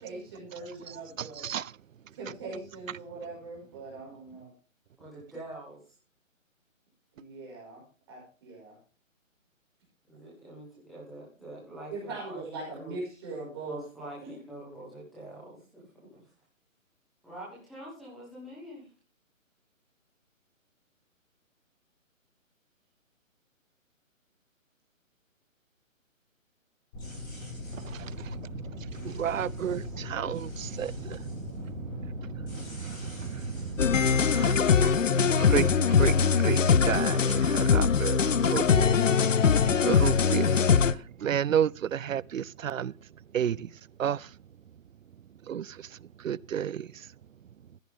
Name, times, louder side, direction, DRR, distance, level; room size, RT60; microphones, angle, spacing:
voice 1, 0.0-1.5 2.2-4.5 7.1-7.8 8.1-8.7 11.9-13.8 14.2-14.6, right 3 dB, 20° right, 5.7 m, -41 dB
voice 2, 5.0-5.8 10.1-13.0 13.6-16.2 17.2-18.9, right 1 dB, ahead, 1.2 m, -45 dB
sound 1, 26.9-34.5, left 2 dB, 15° left, 6.4 m, -40 dB
voice 3, 29.2-29.8 30.1-30.4 30.8-30.9 35.5-35.7 36.0-36.1 36.4-36.6 36.9-37.2 37.5-38.2 38.5-38.9 39.8-40.4 41.2-42.9 43.3-43.5 44.0-44.2 45.5-45.6 46.3-46.7, right 9 dB, 75° right, 0.6 m, -29 dB
sound 2, 33.8-40.9, left 6 dB, 70° left, 0.9 m, -22 dB
15.0 x 10.5 x 3.6 m
hypercardioid pair, 180°, 40 cm